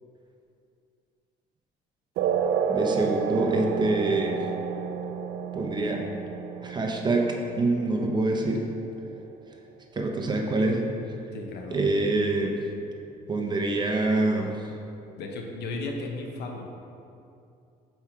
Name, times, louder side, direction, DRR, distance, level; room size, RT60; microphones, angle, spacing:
sound 1, 2.2-9.2, right 6 dB, 70° right, 0.4 m, -30 dB
voice 1, 2.7-4.4 5.5-6.0 6.6-8.7 10.0-10.8 11.7-12.6 13.3-14.6, right 2 dB, 25° right, 1 dB, 0.8 m, -25 dB
voice 2, 11.3-11.8 15.2-16.6, left 3 dB, 75° left, 2 dB, 0.9 m, -35 dB
5.7 x 4.7 x 4.4 m, 2.6 s
cardioid pair, 110°, 17 cm